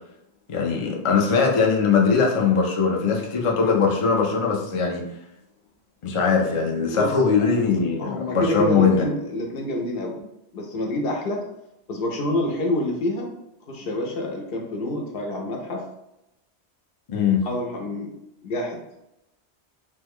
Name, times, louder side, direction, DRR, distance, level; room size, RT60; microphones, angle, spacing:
voice 1, 0.5-5.0 6.0-9.1 17.1-17.4, left 5 dB, 45° left, -1 dB, 0.4 m, -21 dB
voice 2, 6.9-7.5 8.0-10.2 10.5-11.4 11.9-13.3 13.7-15.8 17.4-18.1 18.4-18.8, left 1 dB, 60° left, 1 dB, 0.8 m, -27 dB
3.1 x 2.2 x 3.5 m, 0.86 s
omnidirectional pair, 1.1 m